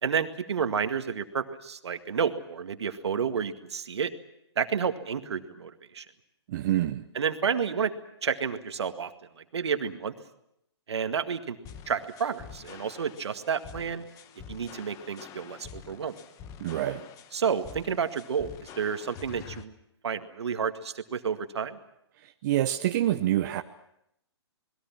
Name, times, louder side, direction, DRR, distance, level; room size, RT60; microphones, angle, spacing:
voice 1, 0.0-4.1 4.6-6.1 7.1-7.9 8.2-9.1 9.4-10.1 10.9-11.6 11.9-14.0 14.5-16.2 17.3-19.7 20.0-21.8, right 6 dB, 70° right, 8 dB, 2.0 m, -30 dB
voice 2, 6.5-7.0 16.6-17.0 22.4-23.6, right 13 dB, 40° right, 7 dB, 0.9 m, -26 dB
sound 1, 11.6-19.6, left 8 dB, 25° left, 1.3 m, -47 dB
28.5 x 21.0 x 6.0 m, 0.79 s
hypercardioid pair, 135°, 15 cm